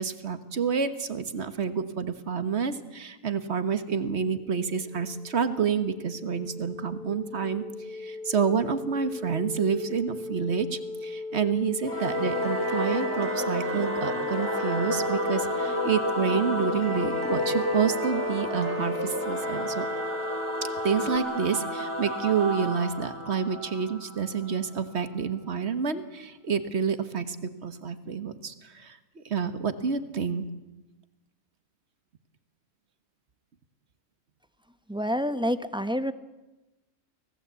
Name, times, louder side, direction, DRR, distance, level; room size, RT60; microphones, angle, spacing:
voice 1, 0.0-7.6 7.9-19.9 20.8-29.0 29.2-30.4, right 6 dB, 60° right, 10 dB, 1.6 m, -28 dB
sound 1, 4.2-21.2, left 3 dB, 35° right, 1.4 m, -37 dB
Singing / Musical instrument, 11.8-24.7, left 1 dB, 20° left, 3.2 m, -30 dB
voice 2, 34.9-36.1, equal, 5° right, 11 dB, 0.6 m, -28 dB
25.0 x 18.0 x 8.2 m, 1.1 s
omnidirectional pair, 1.3 m